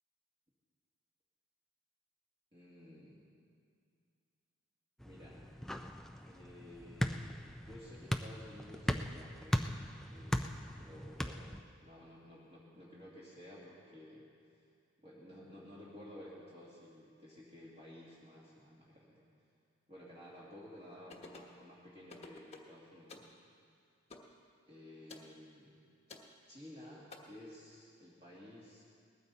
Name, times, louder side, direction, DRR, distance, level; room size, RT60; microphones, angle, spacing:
voice 1, 2.5-3.3 5.0-5.4 6.2-7.3 7.6-9.8 10.1-14.3 15.0-19.2 19.9-23.3 24.7-25.8 26.5-28.8, left 1 dB, 25° right, -8 dB, 2.3 m, -54 dB
sound 1, 5.0-11.6, equal, ahead, 0.4 m, -38 dB
sound 2, 21.1-21.6 22.1-22.7 23.1-23.3 24.1-24.3 25.1-25.3 26.1-26.3 27.1-27.2, left 3 dB, 30° left, 1.2 m, -51 dB
20.0 x 14.5 x 4.1 m, 2.4 s
head